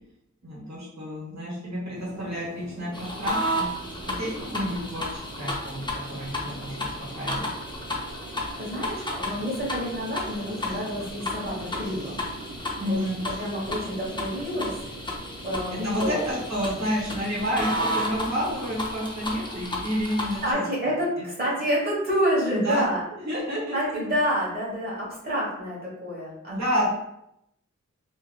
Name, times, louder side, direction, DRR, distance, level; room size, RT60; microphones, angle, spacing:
voice 1, 0.4-3.6 4.0-6.9 7.1-7.5 12.8-13.2 15.7-20.6 22.5-22.8 23.1-23.8 26.5-26.9, equal, 65° right, -7 dB, 1.4 m, -30 dB
sound 1, 1.9-18.9, right 3 dB, 90° right, 0.7 m, -43 dB
sound 2, 2.9-20.5, left 1 dB, 15° left, 0.6 m, -33 dB
voice 2, 8.6-12.2 12.9-13.0 13.4-14.7 15.4-16.2 20.4-23.0 23.7-26.5, equal, 30° right, -6 dB, 1.4 m, -28 dB
3.8 x 2.8 x 2.4 m, 0.81 s
wide cardioid pair, 75°, 30 cm